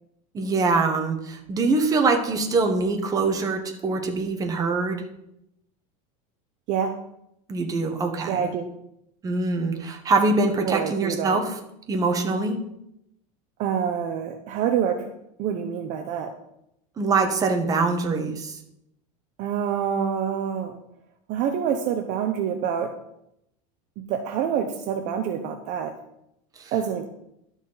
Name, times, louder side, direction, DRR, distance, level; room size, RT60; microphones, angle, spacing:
voice 1, 0.3-5.0 7.5-8.5 9.2-11.6 11.9-12.6 17.0-18.6 26.6-26.7, right 3 dB, 20° right, 4 dB, 1.1 m, -24 dB
voice 2, 8.3-8.7 10.6-11.4 13.6-15.1 15.4-16.3 19.4-20.8 21.3-22.9 24.0-25.9 26.7-27.1, right 8 dB, 40° right, 5 dB, 0.7 m, -26 dB
11.5 x 6.3 x 4.0 m, 0.81 s
supercardioid pair, 160°, 19 cm